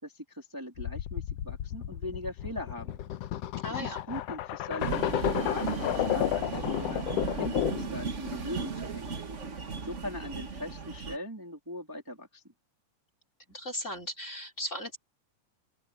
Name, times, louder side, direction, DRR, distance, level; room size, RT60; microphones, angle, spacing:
voice 1, 0.0-3.0 3.7-7.0 7.4-9.1 9.8-12.4, left 1 dB, 5° right, 3.0 m, -40 dB
sound 1, 0.8-8.0, left 12 dB, 70° left, 1.6 m, -32 dB
voice 2, 3.6-4.0 13.5-15.0, left 1 dB, 25° left, 3.6 m, -37 dB
sound 2, 4.8-11.2, right 5 dB, 40° right, 1.1 m, -36 dB
open air
omnidirectional pair, 3.4 m